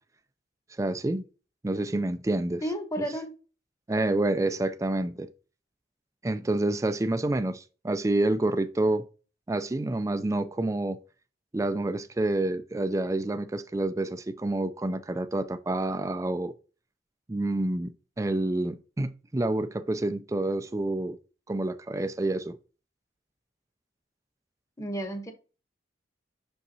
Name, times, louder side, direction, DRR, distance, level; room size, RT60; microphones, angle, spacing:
voice 1, 0.8-1.2 1.6-2.6 3.9-5.3 6.2-9.1 9.5-11.0 11.5-16.5 17.3-21.2 21.5-22.6, right 2 dB, 15° right, 0.4 m, -28 dB
voice 2, 2.6-3.3 24.8-25.3, equal, 20° left, 1.0 m, -32 dB
6.3 x 5.5 x 2.7 m
head